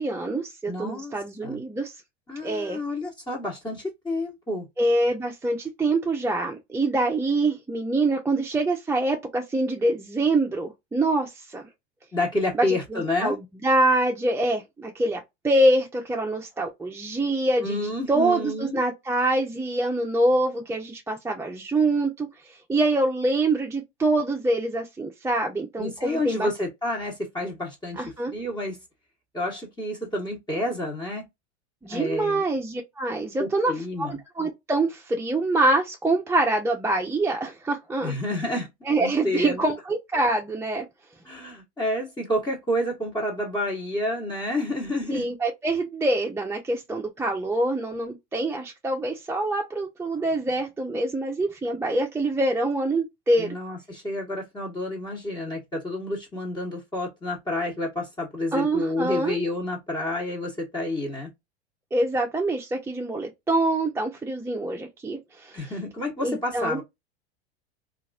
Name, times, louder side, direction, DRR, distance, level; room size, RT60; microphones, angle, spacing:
voice 1, 0.0-2.0 2.4-2.8 4.8-11.6 12.5-12.7 12.9-26.5 28.0-28.3 31.8-38.1 38.9-40.8 45.1-53.6 58.5-59.4 61.9-65.7 66.2-66.8, right 2 dB, 10° right, 0.5 m, -25 dB
voice 2, 0.7-1.1 1.4-1.6 2.3-4.7 12.1-13.4 17.6-18.8 25.8-28.0 28.3-28.8 29.3-31.2 31.9-32.4 33.4-34.1 38.0-38.7 39.0-39.6 41.2-45.2 53.4-61.3 65.5-66.8, left 1 dB, 15° left, 1.1 m, -29 dB
2.9 x 2.5 x 2.3 m
hypercardioid pair, 95°, 34 cm